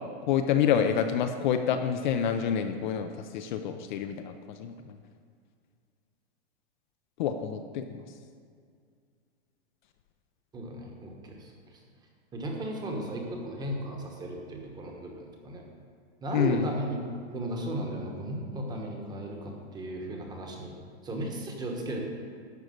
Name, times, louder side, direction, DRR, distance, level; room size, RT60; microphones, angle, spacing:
voice 1, 0.3-5.0 7.2-8.0 16.3-16.7, left 8 dB, 45° left, 7 dB, 0.6 m, -28 dB
voice 2, 10.5-11.8 12.3-15.6 16.2-17.0 17.3-20.7 21.0-22.0, right 1 dB, 10° right, 1 dB, 1.1 m, -35 dB
12.0 x 4.7 x 7.9 m, 2.2 s
supercardioid pair, 160°, 33 cm